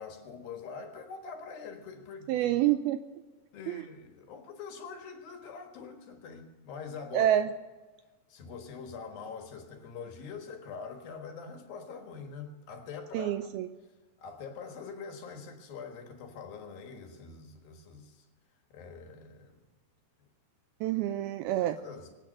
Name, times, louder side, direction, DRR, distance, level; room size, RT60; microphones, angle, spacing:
voice 1, 0.0-2.5 3.5-7.3 8.3-13.3 14.2-18.3 18.7-19.6 21.8-22.2, left 5 dB, 65° left, 5 dB, 3.1 m, -44 dB
voice 2, 2.3-3.0 3.7-3.8 7.1-7.5 13.1-13.7 20.8-21.8, right 12 dB, 80° right, 10 dB, 2.2 m, -27 dB
24.0 x 9.1 x 6.4 m, 1.3 s
omnidirectional pair, 4.9 m